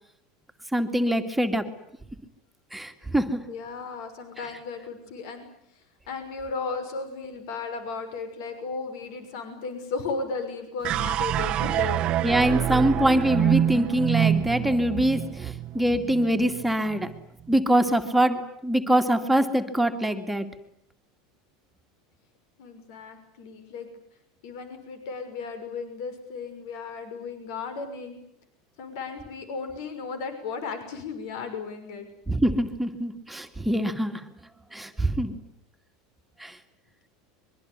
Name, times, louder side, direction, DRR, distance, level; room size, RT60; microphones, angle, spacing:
voice 1, 0.7-1.7 2.7-3.4 12.2-17.1 17.5-20.5 32.3-34.3 34.7-35.4 36.4-36.6, right 1 dB, 5° right, 5 dB, 2.2 m, -24 dB
voice 2, 3.5-5.5 5.7-12.1 22.6-23.9 24.4-28.2 28.8-32.1, left 4 dB, 75° left, 9 dB, 6.0 m, -35 dB
sound 1, 10.8-17.2, right 11 dB, 40° right, 1.1 m, -26 dB
24.5 x 23.5 x 9.7 m, 0.73 s
supercardioid pair, 125°, 2 cm